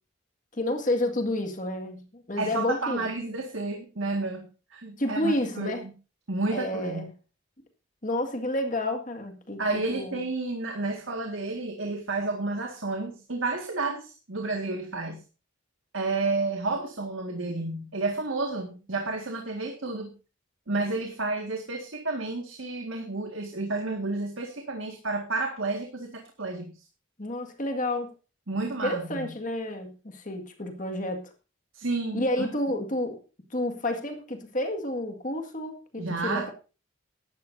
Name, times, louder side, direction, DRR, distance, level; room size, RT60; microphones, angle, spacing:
voice 1, 0.5-3.0 5.0-5.8 6.5-7.1 8.0-10.2 27.2-28.1 28.8-31.3 32.1-33.2 33.5-36.5, left 1 dB, 40° left, 5 dB, 1.9 m, -30 dB
voice 2, 2.4-5.9 6.3-7.1 9.6-15.2 15.9-20.1 20.7-26.7 28.5-29.3 31.7-32.5 36.0-36.5, right 3 dB, 80° right, 2 dB, 1.9 m, -31 dB
16.5 x 12.5 x 2.7 m, 0.33 s
head